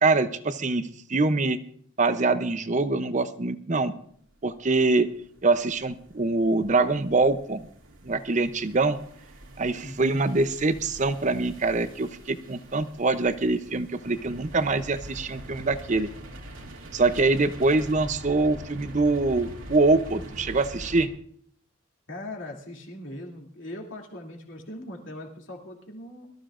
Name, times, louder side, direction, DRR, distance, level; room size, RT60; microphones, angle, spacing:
voice 1, 0.0-1.6 2.0-3.9 4.4-5.1 5.4-7.6 8.0-9.0 9.6-16.1 16.9-21.1, right 3 dB, 35° right, 12 dB, 0.6 m, -24 dB
sound 1, 4.5-21.0, right 1 dB, 90° right, 2.4 m, -44 dB
voice 2, 9.8-10.2 22.1-26.3, left 1 dB, 70° left, 0 dB, 2.7 m, -40 dB
22.5 x 13.5 x 2.5 m, 0.63 s
head